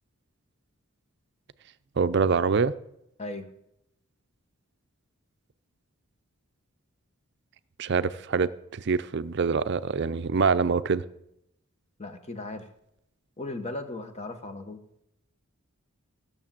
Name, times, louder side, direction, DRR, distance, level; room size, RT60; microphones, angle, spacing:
voice 1, 2.0-2.7 7.8-11.0, right 5 dB, 50° right, 14 dB, 0.5 m, -25 dB
voice 2, 3.2-3.5 12.0-12.7 13.4-14.8, left 2 dB, 30° left, 7 dB, 1.1 m, -37 dB
15.5 x 6.7 x 7.4 m, 0.80 s
head